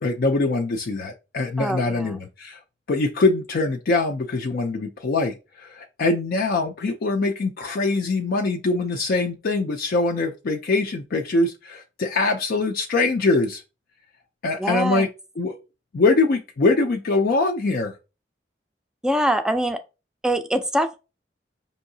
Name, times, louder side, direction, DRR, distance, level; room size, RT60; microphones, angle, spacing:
voice 1, 0.0-2.6 2.9-13.6 14.4-15.1 15.4-15.6 15.9-18.0, left 3 dB, 55° left, 0.4 m, -23 dB
voice 2, 1.6-2.2 14.6-15.1 19.0-19.8 20.2-21.0, right 1 dB, 5° right, 0.4 m, -24 dB
5.4 x 2.7 x 2.7 m
head